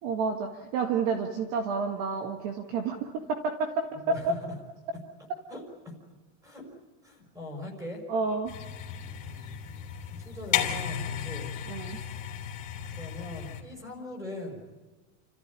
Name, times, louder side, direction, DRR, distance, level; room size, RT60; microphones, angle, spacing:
voice 1, 0.0-4.2 8.1-8.5 11.7-12.0, right 4 dB, 45° right, 5 dB, 1.8 m, -30 dB
voice 2, 3.9-4.5 5.5-6.0 6.4-6.6 7.0-8.0 9.2-9.5 10.1-11.5 11.8-12.1 12.9-14.6, left 1 dB, 10° right, 3 dB, 5.6 m, -41 dB
sound 1, 8.5-13.6, left 9 dB, 20° left, 3.2 m, -34 dB
30.0 x 14.5 x 9.8 m, 1.3 s
supercardioid pair, 170°, 40 cm